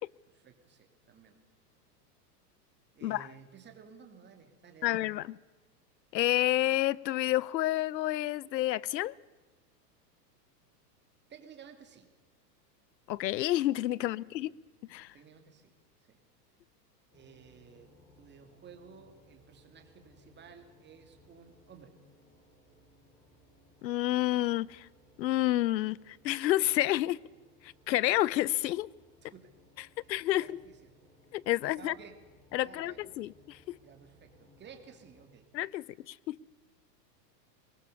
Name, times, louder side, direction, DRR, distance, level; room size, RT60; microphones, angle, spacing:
voice 1, 0.3-1.4 3.0-5.0 11.3-12.1 14.0-14.3 15.1-15.7 16.1-16.2 17.1-21.9 29.2-29.5 30.0-30.9 31.7-32.1 32.5-33.1 33.8-35.5, right 7 dB, 20° right, 2.8 m, -54 dB
voice 2, 4.8-5.4 6.1-9.1 13.1-14.5 14.9-15.1 23.8-24.9 25.2-27.2 27.6-28.9 30.1-30.5 31.3-31.9 32.5-33.8 35.5-36.4, left 15 dB, 90° left, 0.7 m, -29 dB
sound 1, 17.1-35.2, left 1 dB, 15° left, 6.2 m, -63 dB
23.0 x 19.5 x 6.9 m
hypercardioid pair, 130°, 49 cm